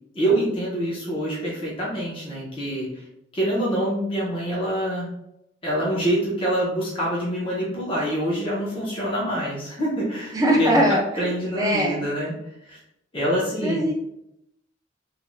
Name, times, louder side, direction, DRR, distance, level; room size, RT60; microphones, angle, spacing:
voice 1, 0.1-3.0 3.3-5.1 5.6-10.8 11.2-12.3 12.7-12.8 13.1-13.8, right 1 dB, 30° left, -6 dB, 0.8 m, -26 dB
voice 2, 10.3-12.0 13.6-13.9, right 1 dB, 20° right, -2 dB, 0.6 m, -21 dB
3.1 x 2.7 x 2.2 m, 0.81 s
head